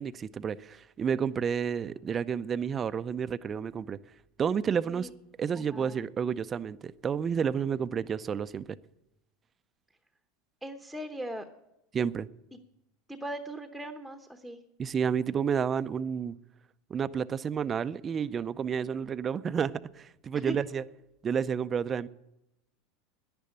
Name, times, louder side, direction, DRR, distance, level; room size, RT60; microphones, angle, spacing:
voice 1, 0.0-4.0 4.4-5.1 5.4-8.8 11.9-12.3 14.8-16.4 16.9-20.8 21.2-22.1, right 7 dB, 25° right, 0.5 m, -30 dB
voice 2, 5.5-6.0 10.6-11.5 12.5-12.6 13.1-14.6 20.3-20.6, right 1 dB, ahead, 0.9 m, -39 dB
10.5 x 10.5 x 8.7 m
supercardioid pair, 145°, 0 cm